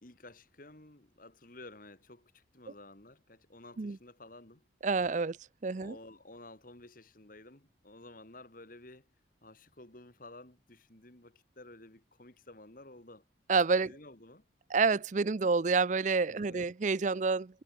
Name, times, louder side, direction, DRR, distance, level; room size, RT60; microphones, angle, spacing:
voice 1, 0.0-4.6 5.8-9.1 9.4-13.2 13.8-14.4 16.3-16.7, left 2 dB, 45° left, 2.4 m, -53 dB
voice 2, 4.8-5.4 5.6-5.9 13.5-13.9 14.7-17.5, right 4 dB, 40° right, 0.5 m, -28 dB
head